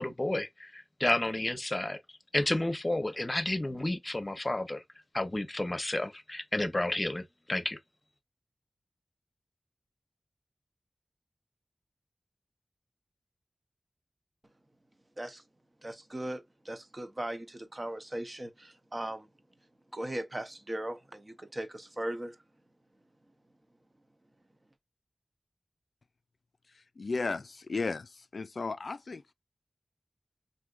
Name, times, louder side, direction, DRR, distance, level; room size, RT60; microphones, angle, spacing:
voice 1, 0.0-2.0 2.3-4.8 5.1-7.8, left 1 dB, 35° left, 0.7 m, -31 dB
voice 2, 15.8-19.3 19.9-22.4, right 1 dB, 35° right, 0.7 m, -38 dB
voice 3, 26.7-29.3, left 3 dB, 75° left, 0.3 m, -35 dB
3.5 x 2.6 x 2.4 m
cardioid pair, 40°, 0 cm